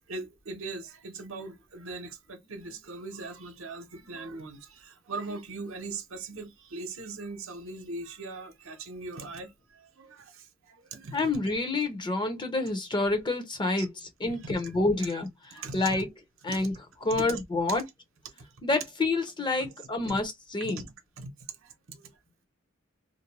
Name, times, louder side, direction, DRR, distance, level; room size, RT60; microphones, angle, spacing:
voice 1, 0.1-11.2 13.8-13.9 14.3-14.7 15.5-16.0 16.5-16.7 17.1-17.4 17.7-17.8 18.3-18.5 19.6-19.7 20.0-20.2 20.6-20.8 21.2-21.3 21.6-22.1, right 3 dB, 75° right, 0.8 m, -40 dB
voice 2, 11.1-13.9 14.2-15.3 15.7-16.1 16.4-16.7 17.0-17.8 18.6-20.8, left 2 dB, 25° left, 0.7 m, -28 dB
2.5 x 2.2 x 2.9 m
head